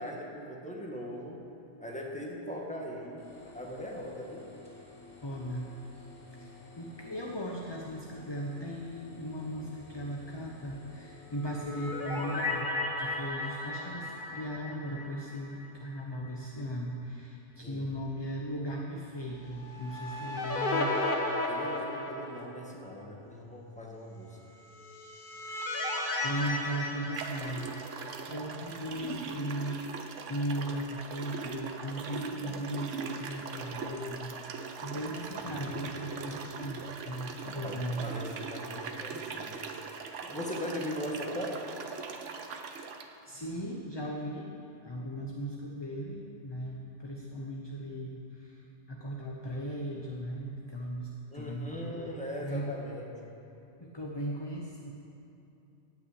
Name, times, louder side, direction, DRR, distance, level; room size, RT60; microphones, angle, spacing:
voice 1, 0.0-1.4 1.8-4.5 17.6-17.8 21.5-24.4 37.6-39.5 40.2-41.7 51.3-53.4, equal, 5° left, -2 dB, 1.6 m, -39 dB
sound 1, 3.2-12.5, left 3 dB, 70° left, 3.3 m, -53 dB
voice 2, 5.2-6.5 6.8-12.7 13.0-21.0 26.2-29.8 30.3-38.2 43.2-44.5 44.8-48.6 48.9-52.1 52.4-52.7 53.8-54.9, equal, 25° left, -1 dB, 0.9 m, -37 dB
sound 2, 11.4-15.7 16.0-16.1 19.6-22.7 24.7-28.1, left 2 dB, 45° left, 1.3 m, -34 dB
sound 3, 26.4-26.5 27.1-43.1, right 5 dB, 70° right, 1.2 m, -40 dB
16.0 x 6.0 x 8.7 m, 2.7 s
omnidirectional pair, 1.3 m